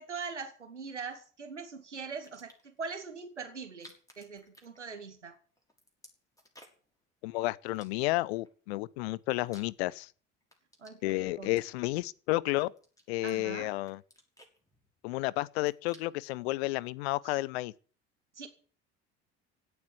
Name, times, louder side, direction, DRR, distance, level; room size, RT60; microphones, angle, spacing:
voice 1, 0.0-5.3 10.8-11.6 13.2-13.7 17.2-17.4 18.4-18.5, right 5 dB, 85° right, 2.3 m, -42 dB
sound 1, 2.1-2.8 3.6-5.3 5.6-6.9 7.7-8.5 9.0-10.1 10.4-12.1 12.6-13.5 13.8-15.2 15.5-16.4, equal, 10° left, 5.9 m, -58 dB
voice 2, 7.2-10.1 11.0-12.7 13.1-14.0 15.0-17.7, left 19 dB, 65° left, 0.7 m, -31 dB
16.5 x 8.0 x 9.6 m
figure-of-eight pair, 60°, 34 cm